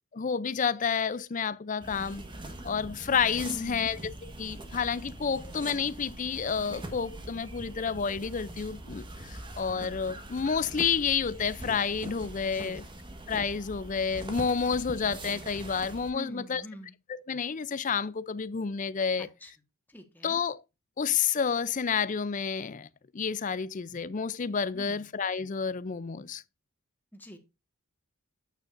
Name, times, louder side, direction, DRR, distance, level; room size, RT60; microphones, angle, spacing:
voice 1, 0.1-2.2 2.6-12.8 13.3-16.6 17.1-19.3 20.2-20.6 21.0-22.9 23.1-26.4, left 6 dB, 35° left, 0.4 m, -30 dB
sound 1, 1.8-16.1, right 1 dB, 20° right, 1.3 m, -43 dB
voice 2, 3.4-4.0 12.4-12.9 16.1-16.9 19.2-19.5 19.9-20.4 24.7-25.1 27.1-27.4, equal, 10° left, 1.4 m, -45 dB
8.9 x 8.9 x 2.5 m
head